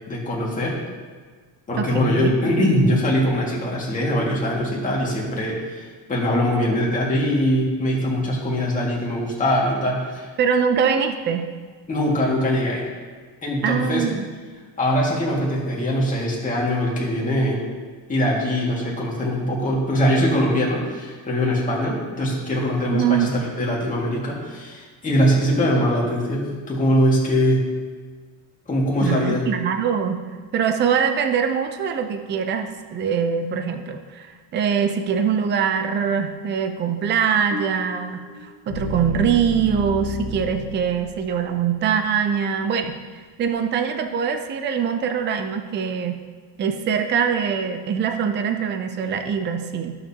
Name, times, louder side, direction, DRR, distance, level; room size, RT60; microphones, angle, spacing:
voice 1, 0.1-0.8 1.7-10.3 11.9-12.9 13.4-14.0 14.8-17.6 18.1-27.7 28.7-29.5, equal, 15° left, -4 dB, 2.0 m, -22 dB
voice 2, 1.8-2.3 10.4-11.5 13.6-14.3 22.9-23.3 29.0-30.2 30.5-43.0 43.4-46.2 46.6-50.0, right 7 dB, 25° right, 6 dB, 0.5 m, -23 dB
sound 1, 37.5-41.6, left 1 dB, 55° left, 1.5 m, -32 dB
14.0 x 6.7 x 2.9 m, 1.5 s
cardioid pair, 160°, 46 cm